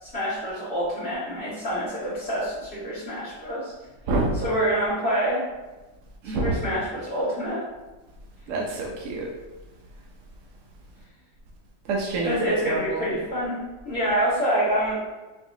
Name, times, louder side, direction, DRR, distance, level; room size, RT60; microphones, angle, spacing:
voice 1, 0.0-3.7 4.4-5.4 6.2-7.6 12.2-13.6 13.8-15.1, equal, 60° left, -11 dB, 1.9 m, -26 dB
voice 2, 6.2-6.6 8.5-9.3 11.9-13.1, right 2 dB, 70° right, -2 dB, 0.8 m, -27 dB
4.6 x 2.9 x 2.7 m, 1.1 s
omnidirectional pair, 1.9 m